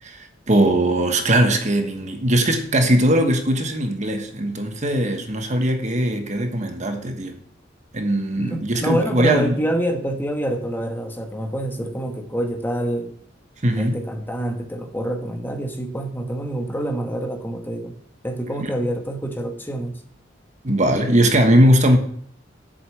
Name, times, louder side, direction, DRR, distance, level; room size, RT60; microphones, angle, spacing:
voice 1, 0.0-7.4 7.9-9.5 13.6-14.0 20.6-22.0, right 1 dB, 40° right, 1.3 m, -19 dB
voice 2, 8.4-13.1 13.7-18.0 18.2-20.0, right 1 dB, 10° left, 1.2 m, -26 dB
8.0 x 6.9 x 7.8 m
head